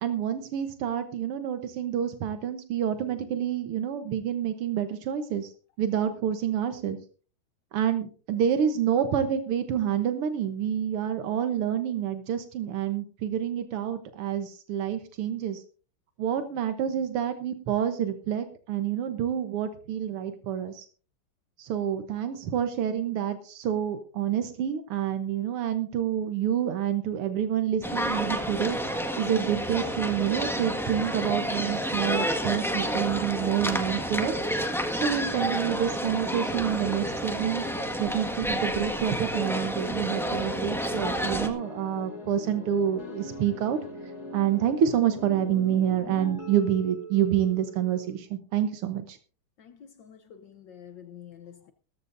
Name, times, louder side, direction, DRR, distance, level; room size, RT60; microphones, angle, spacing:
voice 1, 0.0-5.5 5.8-7.0 7.7-15.6 16.2-20.9 21.6-34.3 34.9-37.7 38.0-43.8 44.3-49.2, right 9 dB, 85° right, 8 dB, 2.0 m, -28 dB
sound 1, 27.8-41.5, equal, ahead, 1.2 m, -30 dB
sound 2, 39.8-48.2, left 1 dB, 30° left, 3.2 m, -42 dB
voice 2, 49.6-51.7, left 9 dB, 65° left, 9 dB, 1.4 m, -48 dB
18.0 x 14.0 x 2.6 m, 0.38 s
omnidirectional pair, 2.4 m